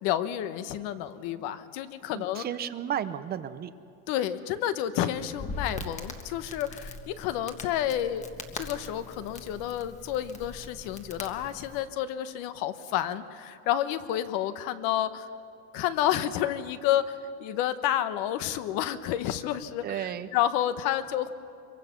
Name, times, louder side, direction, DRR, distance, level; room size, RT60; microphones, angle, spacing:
voice 1, 0.0-2.4 4.1-8.2 8.5-15.3 15.7-21.3, left 11 dB, 55° left, 12 dB, 1.1 m, -30 dB
voice 2, 2.1-3.7 19.8-20.3, right 10 dB, 25° right, 13 dB, 0.6 m, -33 dB
Crackle, 5.2-11.8, left 3 dB, 15° left, 1.4 m, -41 dB
24.0 x 23.0 x 5.9 m, 2.5 s
supercardioid pair, 150°, 42 cm